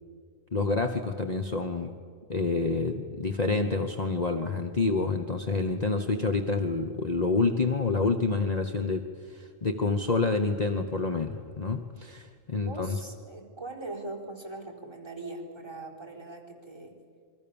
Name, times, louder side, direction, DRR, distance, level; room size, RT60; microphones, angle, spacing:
voice 1, 0.5-1.9 2.3-13.0, left 3 dB, 35° left, 6 dB, 1.1 m, -28 dB
voice 2, 12.5-16.9, right 2 dB, 20° right, -2 dB, 4.4 m, -41 dB
28.5 x 23.5 x 7.1 m, 2.1 s
omnidirectional pair, 1.3 m